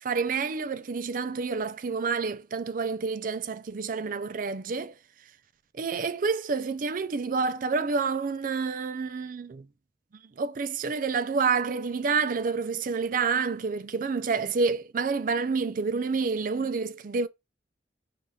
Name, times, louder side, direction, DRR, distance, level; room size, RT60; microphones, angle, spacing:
voice 1, 0.0-5.0 5.7-9.7 10.4-17.3, right 4 dB, 50° right, 0.4 m, -28 dB
5.4 x 2.5 x 3.2 m
head